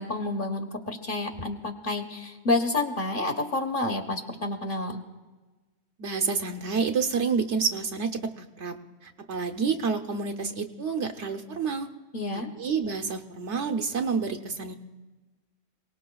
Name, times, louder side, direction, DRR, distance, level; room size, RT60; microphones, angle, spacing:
voice 1, 0.0-5.0 12.1-12.5, left 2 dB, 45° left, 3 dB, 1.4 m, -29 dB
voice 2, 6.0-11.9 12.3-14.7, right 5 dB, 65° right, 5 dB, 1.1 m, -29 dB
28.0 x 18.5 x 2.3 m, 1.2 s
omnidirectional pair, 1.3 m